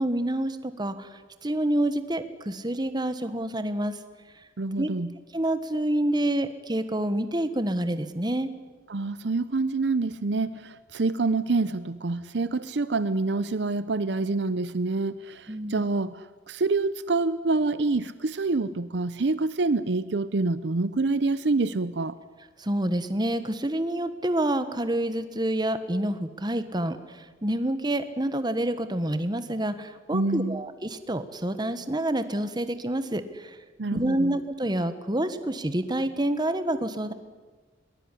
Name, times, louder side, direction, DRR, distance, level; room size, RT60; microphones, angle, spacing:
voice 1, 0.0-4.0 4.8-4.9 5.3-8.5 15.5-15.9 22.6-33.6 33.9-37.1, right 1 dB, 25° right, 11 dB, 1.4 m, -28 dB
voice 2, 4.6-5.1 8.9-22.2 30.1-30.6 33.8-34.4, right 3 dB, 65° right, 15 dB, 0.7 m, -27 dB
22.5 x 19.5 x 9.9 m, 1.3 s
head